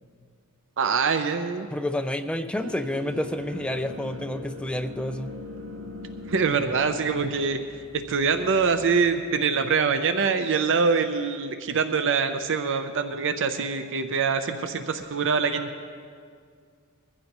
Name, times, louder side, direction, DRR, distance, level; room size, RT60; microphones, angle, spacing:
voice 1, 0.8-1.7 6.3-7.6 7.9-15.9, right 5 dB, 60° right, 8 dB, 0.6 m, -24 dB
voice 2, 1.7-5.3, left 1 dB, 5° left, 8 dB, 0.4 m, -29 dB
sound 1, 2.6-9.2, left 1 dB, 75° right, 2.0 m, -41 dB
22.0 x 15.0 x 3.0 m, 2.2 s
head